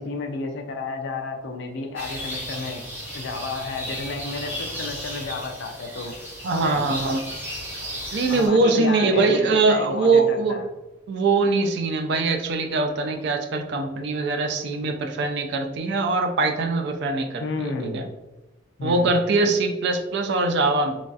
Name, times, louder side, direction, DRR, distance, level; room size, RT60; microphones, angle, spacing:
voice 1, 0.0-2.8 3.1-6.2 6.5-6.9 8.3-10.6 17.4-18.0 18.8-19.1, left 3 dB, 60° left, 4 dB, 0.4 m, -32 dB
sound 1, 2.0-8.5, equal, 10° right, 0.9 m, -34 dB
voice 2, 6.4-7.2 8.1-10.6 11.1-18.0 18.8-21.0, right 3 dB, 60° right, 6 dB, 0.3 m, -22 dB
3.1 x 2.6 x 2.3 m, 1.1 s
head